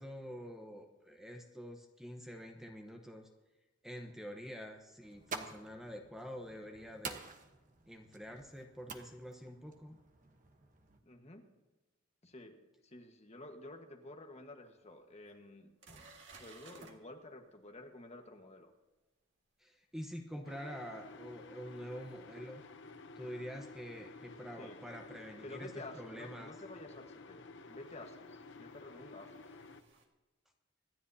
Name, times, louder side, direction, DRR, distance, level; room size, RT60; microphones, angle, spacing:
voice 1, 0.0-3.3 3.8-7.2 7.9-10.0 19.6-22.6 23.2-26.5, equal, ahead, 2 dB, 1.0 m, -47 dB
sound 1, 5.0-11.0, right 4 dB, 40° right, 1.1 m, -49 dB
voice 2, 11.0-11.4 12.2-12.6 12.8-16.0 16.3-18.7 24.6-24.8 25.4-29.5, left 2 dB, 35° left, 3 dB, 1.4 m, -51 dB
sound 2, 14.7-14.8 15.3-15.4 15.8-17.0 22.1-22.2 24.9-25.0 26.7-26.8 28.2-30.1, right 3 dB, 65° right, 1.9 m, -58 dB
sound 3, 20.4-29.8, left 3 dB, 60° left, 0.8 m, -53 dB
25.5 x 10.5 x 2.8 m, 1.1 s
head